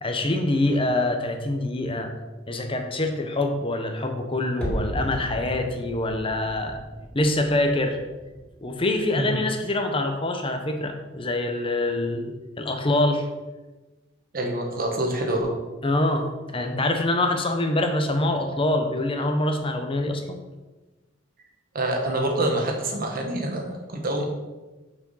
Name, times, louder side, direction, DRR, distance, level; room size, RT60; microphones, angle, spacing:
voice 1, 0.0-2.1 2.5-6.8 7.1-8.0 8.6-13.3 15.8-20.4, left 2 dB, 30° left, 5 dB, 0.9 m, -25 dB
sound 1, 4.6-9.5 9.8-9.9, equal, 10° left, 2.6 m, -36 dB
voice 2, 14.3-15.5 21.7-24.3, right 1 dB, 50° right, 1 dB, 1.4 m, -26 dB
6.5 x 4.9 x 5.5 m, 1.2 s
head